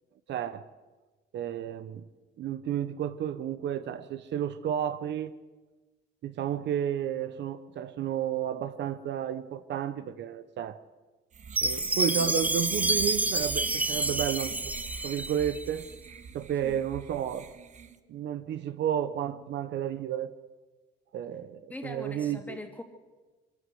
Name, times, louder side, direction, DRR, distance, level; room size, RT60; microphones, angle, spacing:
voice 1, 0.3-0.7 1.3-2.0 2.4-5.3 6.2-10.8 11.6-14.6 15.0-15.9 16.3-17.5 18.1-20.3 21.1-22.6, right 10 dB, 65° right, 0.9 m, -32 dB
sound 1, 11.3-18.0, right 6 dB, 40° right, 1.1 m, -43 dB
Chime, 11.6-15.7, right 2 dB, 10° right, 0.6 m, -29 dB
voice 2, 21.7-22.8, left 1 dB, 10° left, 2.7 m, -41 dB
24.0 x 14.0 x 7.8 m
cardioid pair, 130°, 20 cm